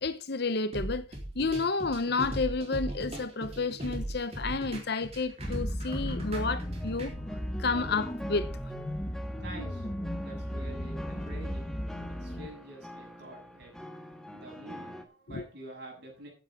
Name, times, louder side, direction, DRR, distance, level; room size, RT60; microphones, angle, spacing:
voice 1, 0.0-1.0 1.3-7.1 7.6-8.5 15.3-15.4, left 3 dB, 60° left, 0.9 m, -30 dB
sound 1, 0.7-7.1, right 1 dB, 35° right, 3.9 m, -37 dB
sound 2, 5.4-12.5, equal, 20° left, 1.6 m, -36 dB
sound 3, 5.9-15.0, equal, 5° left, 1.6 m, -46 dB
voice 2, 9.4-9.9 10.2-11.7 12.1-13.7 14.3-16.3, right 1 dB, 60° right, 7.3 m, -47 dB
15.0 x 8.9 x 3.7 m
head